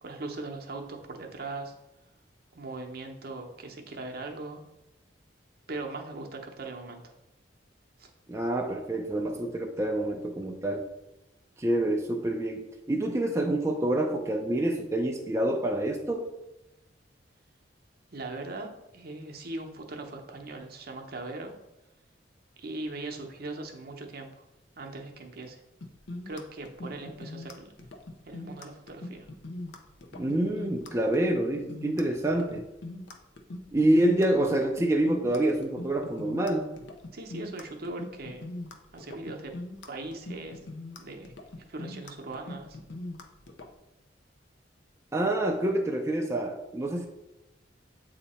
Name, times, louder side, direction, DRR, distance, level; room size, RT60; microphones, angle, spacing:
voice 1, 0.0-1.7 2.5-4.6 5.7-7.1 8.0-8.1 18.1-21.6 22.6-24.4 24.8-25.6 26.3-27.7 28.2-29.3 37.1-38.5 38.9-39.5 39.9-40.6 41.0-41.3 41.7-42.8, right 2 dB, 55° right, 3 dB, 0.8 m, -39 dB
voice 2, 8.3-10.8 11.6-16.3 30.1-32.7 33.7-36.7 45.1-47.1, right 1 dB, 15° right, 1 dB, 0.4 m, -27 dB
sound 1, 25.8-43.7, left 2 dB, 70° left, 0.6 m, -41 dB
8.0 x 2.8 x 4.2 m, 0.96 s
head